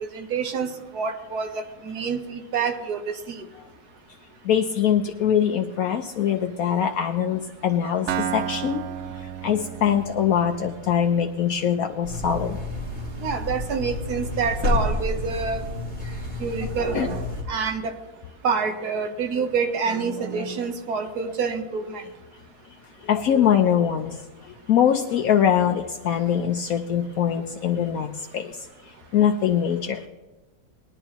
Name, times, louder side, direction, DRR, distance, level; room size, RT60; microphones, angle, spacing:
voice 1, 0.1-3.4 13.2-15.6 16.4-18.0 18.4-22.0, right 5 dB, 85° right, 5 dB, 1.7 m, -27 dB
voice 2, 4.4-8.1 8.3-8.8 9.4-12.6 16.9-17.1 23.0-28.7 29.1-30.0, left 9 dB, 70° left, 4 dB, 1.1 m, -23 dB
Acoustic guitar, 8.1-11.9, right 9 dB, 60° right, 0.8 m, -33 dB
sound 1, 12.0-17.4, left 2 dB, 45° right, 2.8 m, -30 dB
20.5 x 11.0 x 3.0 m, 1.1 s
omnidirectional pair, 1.6 m